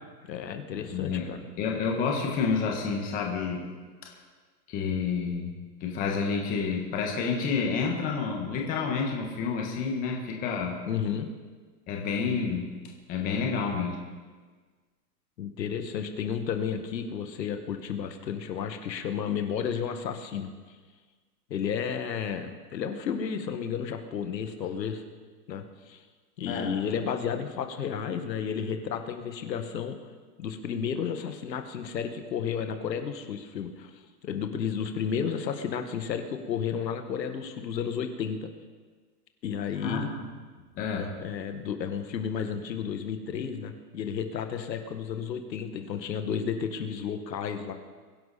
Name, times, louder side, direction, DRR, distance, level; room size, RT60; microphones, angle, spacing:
voice 1, 0.3-1.4 10.9-11.3 15.4-20.5 21.5-25.0 25.5-26.0 26.4-30.0 30.4-33.9 34.2-38.5 39.4-40.1 41.0-47.7, left 7 dB, 85° left, 7 dB, 1.8 m, -32 dB
voice 2, 0.9-1.3 1.6-3.6 4.0-4.1 4.7-5.5 5.8-10.8 11.9-12.7 13.1-14.0 26.5-26.8 39.8-40.2 40.7-41.1, left 5 dB, 15° left, 1 dB, 1.4 m, -29 dB
22.5 x 11.0 x 4.2 m, 1.4 s
hypercardioid pair, 170°, 49 cm